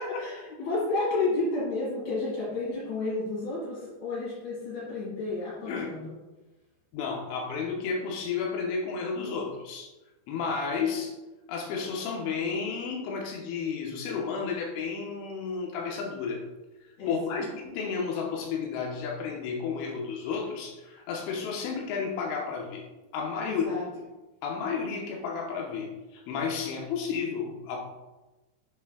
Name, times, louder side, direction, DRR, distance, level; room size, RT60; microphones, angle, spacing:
voice 1, 0.0-6.1 17.0-17.5 23.5-23.9, left 2 dB, 65° left, -9 dB, 3.9 m, -31 dB
voice 2, 6.9-9.9 10.3-11.1 11.5-16.4 17.1-22.9 23.1-23.7 24.4-27.8, left 5 dB, 90° left, 0 dB, 3.3 m, -32 dB
9.1 x 5.8 x 2.2 m, 1.1 s
omnidirectional pair, 5.4 m